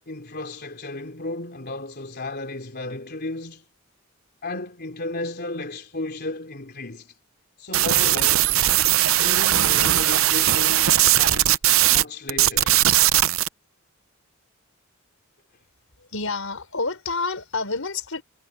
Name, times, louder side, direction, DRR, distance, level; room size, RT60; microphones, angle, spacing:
voice 1, 0.1-3.6 4.4-7.2 7.6-8.5 9.1-11.6 11.9-12.8, left 2 dB, 50° left, 3.8 m, -34 dB
sound 1, 7.7-12.0 12.3-13.5, right 13 dB, 70° right, 0.7 m, -19 dB
voice 2, 16.1-18.2, left 3 dB, 70° left, 5.2 m, -28 dB
head